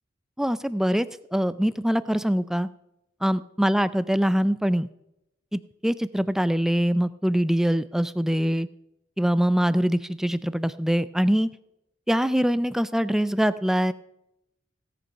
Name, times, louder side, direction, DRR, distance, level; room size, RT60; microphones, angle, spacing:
voice 1, 0.4-1.1 1.3-2.7 3.2-4.9 5.5-8.7 9.2-11.5 12.1-13.9, equal, ahead, 16 dB, 0.3 m, -23 dB
17.0 x 7.8 x 5.4 m, 0.84 s
head